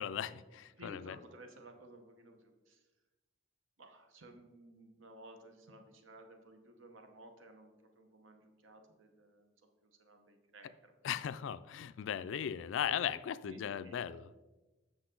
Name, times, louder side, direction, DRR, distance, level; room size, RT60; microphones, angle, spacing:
voice 1, 0.0-1.2 11.0-14.3, left 9 dB, 75° left, 15 dB, 0.3 m, -37 dB
voice 2, 0.8-2.9 3.8-9.5 9.8-10.9 12.8-13.1 13.4-14.0, right 1 dB, 85° right, 5 dB, 0.9 m, -55 dB
7.9 x 6.2 x 3.8 m, 1.2 s
head